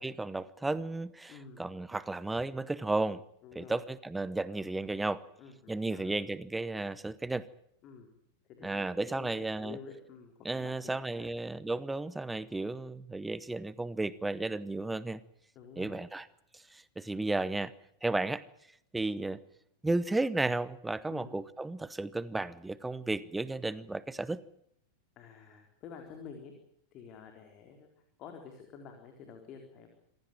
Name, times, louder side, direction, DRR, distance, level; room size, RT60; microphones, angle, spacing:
voice 1, 0.0-3.2 3.5-5.2 5.7-7.5 8.6-9.8 10.4-15.2 15.8-16.3 16.5-17.7 18.0-18.4 18.9-19.4 19.8-24.4, right 2 dB, 5° right, 18 dB, 0.9 m, -33 dB
voice 2, 1.3-1.6 3.4-3.8 5.4-6.1 7.8-8.1 8.5-11.3 15.6-16.0 21.1-21.4 25.2-26.5 26.9-27.9 28.2-29.9, left 6 dB, 35° left, 4 dB, 4.1 m, -49 dB
27.0 x 16.5 x 9.1 m, 0.72 s
figure-of-eight pair, 90°, 0 cm